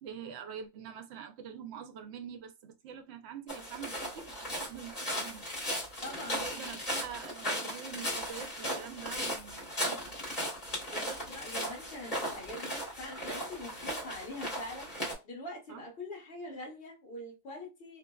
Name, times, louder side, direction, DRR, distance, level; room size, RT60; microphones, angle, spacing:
voice 1, 0.0-5.5 6.0-10.1 15.7-15.8, right 8 dB, 65° right, 0.8 m, -45 dB
sound 1, 3.5-15.1, equal, 30° left, 1.5 m, -37 dB
voice 2, 6.0-6.5 10.9-14.9 15.2-18.0, left 1 dB, 50° left, 1.2 m, -44 dB
2.7 x 2.5 x 2.2 m
omnidirectional pair, 1.3 m